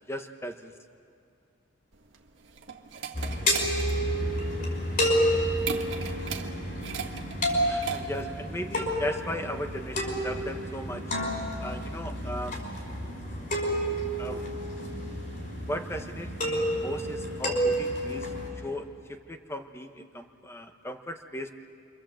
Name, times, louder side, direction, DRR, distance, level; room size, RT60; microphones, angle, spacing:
voice 1, 0.1-0.7 7.6-11.0 11.6-12.6 14.2-14.5 15.7-21.5, equal, 15° left, 6 dB, 1.2 m, -37 dB
sound 1, 1.9-8.4, right 7 dB, 80° right, 1.6 m, -39 dB
sound 2, 3.1-18.5, equal, 45° left, 5.6 m, -30 dB
27.5 x 25.0 x 7.7 m, 2.4 s
head